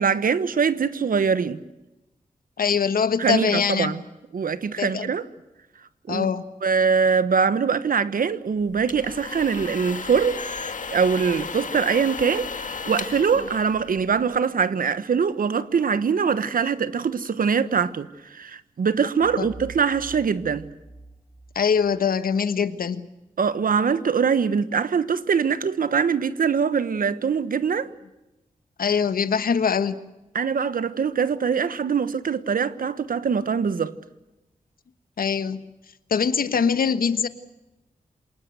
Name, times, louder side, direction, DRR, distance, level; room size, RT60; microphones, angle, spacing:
voice 1, 0.0-1.6 3.2-4.0 4.3-5.2 6.1-6.3 6.6-10.4 10.9-20.7 23.4-27.9 30.3-33.9, right 6 dB, 75° right, 1.2 m, -23 dB
voice 2, 2.6-3.9 4.8-5.1 6.1-6.4 21.5-23.1 28.8-30.0 35.2-35.6 36.1-37.3, left 6 dB, 85° left, 1.3 m, -23 dB
sound 1, 8.7-14.4, left 5 dB, 60° left, 1.9 m, -34 dB
sound 2, 19.2-22.0, right 5 dB, 5° right, 4.4 m, -44 dB
27.0 x 19.5 x 8.0 m
wide cardioid pair, 80°, 15 cm